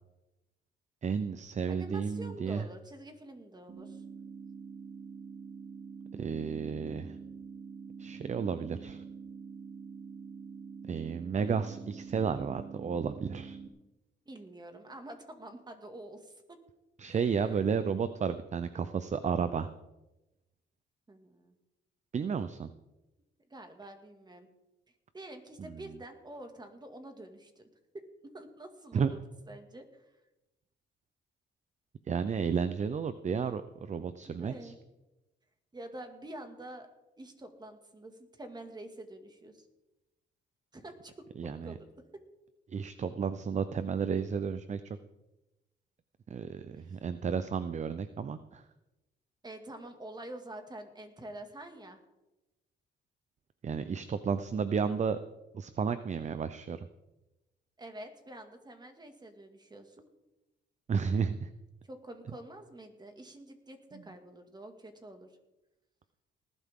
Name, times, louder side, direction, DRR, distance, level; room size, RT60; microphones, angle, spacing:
voice 1, 1.0-2.6 6.1-7.2 8.0-9.0 10.9-13.6 17.0-19.7 22.1-22.7 25.6-25.8 28.9-29.1 32.1-34.7 41.4-41.7 42.7-45.0 46.3-48.6 53.6-55.2 55.5-56.9 60.9-61.5, right 6 dB, 35° right, 12 dB, 0.7 m, -32 dB
voice 2, 1.7-4.0 14.3-16.6 17.1-17.8 21.1-21.6 23.5-24.5 25.1-27.7 27.9-28.0 28.3-29.2 29.5-30.2 34.3-34.8 35.7-36.9 37.2-39.7 40.7-41.1 41.4-42.2 46.8-47.0 49.4-52.0 57.8-60.1 61.9-65.3, right 1 dB, 20° right, 6 dB, 2.2 m, -47 dB
sound 1, 3.7-13.7, right 5 dB, 50° right, 2.4 m, -46 dB
19.0 x 12.0 x 3.8 m, 1.0 s
cardioid pair, 90°, 20 cm